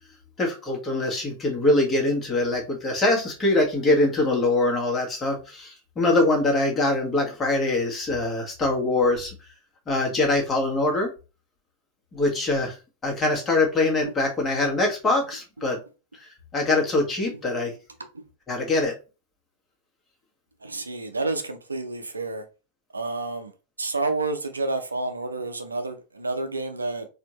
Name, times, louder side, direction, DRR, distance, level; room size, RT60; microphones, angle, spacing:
voice 1, 0.4-9.3 9.9-11.1 12.1-12.7 13.0-15.8 16.5-17.7 18.5-18.9, left 2 dB, 20° left, 1.4 m, -23 dB
voice 2, 20.6-22.4 22.9-23.5 23.8-27.1, right 3 dB, 80° right, 0.5 m, -29 dB
4.2 x 2.6 x 3.0 m
figure-of-eight pair, 90°, 0 cm